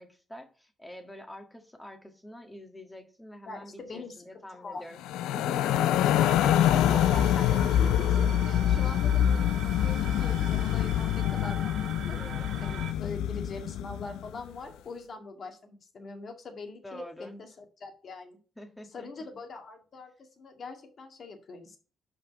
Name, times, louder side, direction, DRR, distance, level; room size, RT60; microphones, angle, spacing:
voice 1, 0.0-5.0 5.3-6.0 8.8-8.9 12.1-12.5 16.8-17.4 18.6-19.2, left 1 dB, 10° left, 6 dB, 1.6 m, -46 dB
voice 2, 3.5-4.8 6.0-12.2 12.6-18.4 18.9-21.8, left 3 dB, 50° left, 4 dB, 2.0 m, -42 dB
sound 1, 5.0-14.3, left 11 dB, 90° left, 0.4 m, -25 dB
sound 2, 6.2-12.9, right 6 dB, 70° right, 1.5 m, -42 dB
5.5 x 5.4 x 6.3 m, 0.37 s
cardioid pair, 90°, 0 cm